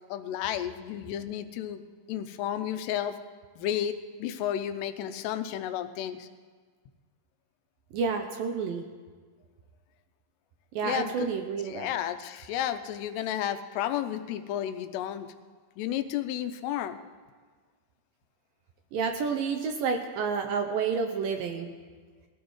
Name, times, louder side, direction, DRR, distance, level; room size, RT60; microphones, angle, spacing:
voice 1, 0.1-1.8 2.1-3.2 3.6-6.3 10.8-11.3 11.7-15.3 15.8-17.0, left 10 dB, 85° left, 9 dB, 2.8 m, -32 dB
voice 2, 7.9-8.9 10.7-11.9 18.9-21.7, right 5 dB, 75° right, 4 dB, 2.2 m, -30 dB
21.0 x 15.5 x 3.2 m, 1.5 s
omnidirectional pair, 4.7 m